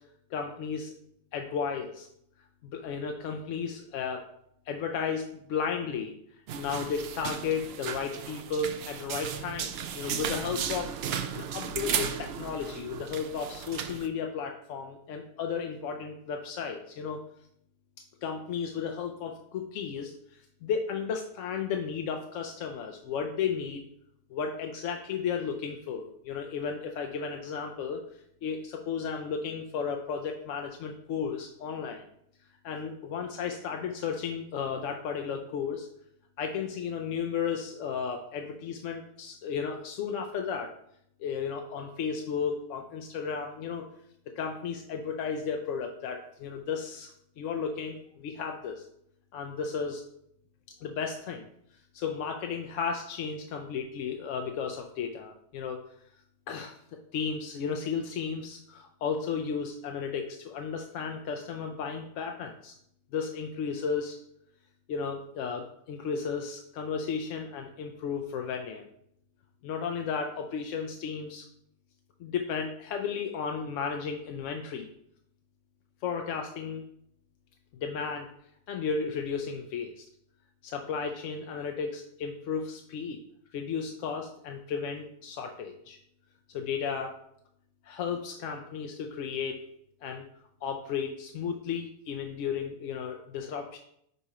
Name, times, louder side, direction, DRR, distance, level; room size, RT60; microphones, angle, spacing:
voice 1, 0.3-0.9 1.3-2.1 2.6-4.2 4.7-11.0 11.3-17.2 18.2-23.8 24.3-32.0 32.6-35.9 36.4-40.7 41.2-43.9 44.3-48.9 49.3-50.0 50.8-51.5 51.9-55.8 56.5-56.7 57.1-62.7 63.1-64.2 64.9-68.9 69.6-71.5 72.2-74.9 76.0-76.8 77.8-78.3 78.7-80.0 80.6-83.2 83.5-86.0 86.5-87.2 87.8-89.6 90.0-90.3 90.6-93.8, left 6 dB, 70° left, 3 dB, 0.8 m, -34 dB
sound 1, 6.5-14.1, right 8 dB, 65° right, 0.6 m, -35 dB
5.5 x 4.2 x 4.8 m, 0.73 s
omnidirectional pair, 1.5 m